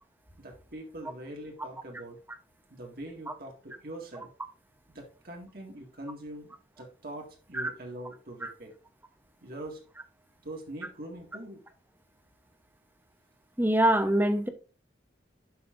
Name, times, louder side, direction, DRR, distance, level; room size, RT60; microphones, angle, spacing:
voice 1, 0.4-2.2 2.7-4.3 4.9-8.7 9.4-9.8 10.4-11.6, right 1 dB, 55° right, 1.9 m, -43 dB
voice 2, 13.6-14.5, right 1 dB, 10° right, 0.9 m, -24 dB
11.5 x 5.6 x 2.6 m
head